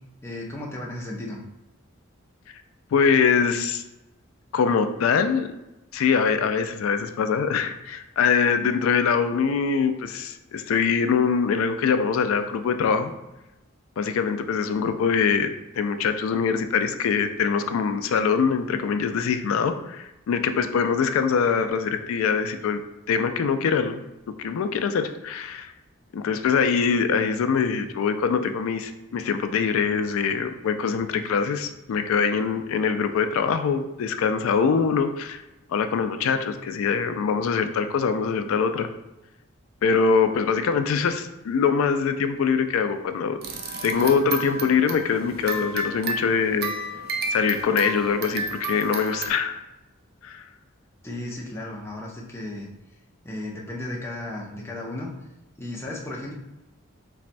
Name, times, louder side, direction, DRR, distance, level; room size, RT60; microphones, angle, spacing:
voice 1, 0.2-1.4 51.0-52.7 53.2-55.1 55.6-56.3, left 1 dB, 10° left, -3 dB, 0.5 m, -34 dB
voice 2, 2.9-3.8 4.5-5.5 5.9-13.1 14.0-15.5 15.8-22.8 23.1-24.0 24.4-25.7 26.1-35.4 35.7-38.9 39.8-43.4 43.8-46.7 47.3-49.6 50.2-50.4, left 6 dB, 75° left, 9 dB, 0.3 m, -23 dB
sound 1, 43.4-49.3, right 2 dB, 50° right, 0.4 m, -32 dB
4.0 x 2.2 x 2.5 m, 0.97 s
head